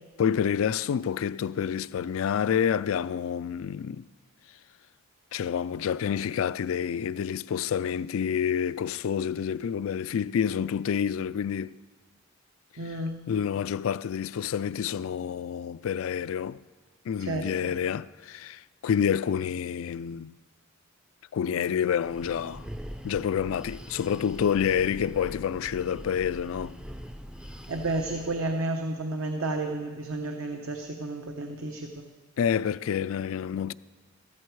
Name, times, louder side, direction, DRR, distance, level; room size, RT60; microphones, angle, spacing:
voice 1, 0.2-4.1 5.3-11.7 13.3-16.6 17.1-20.3 21.3-22.6 23.0-26.8 32.4-33.7, left 8 dB, 70° left, 0.3 m, -28 dB
voice 2, 12.8-13.2 17.2-17.7 27.7-32.0, right 2 dB, 70° right, 0.9 m, -31 dB
Breathing, 22.0-28.5, equal, 5° right, 0.4 m, -43 dB
14.5 x 13.0 x 4.7 m
head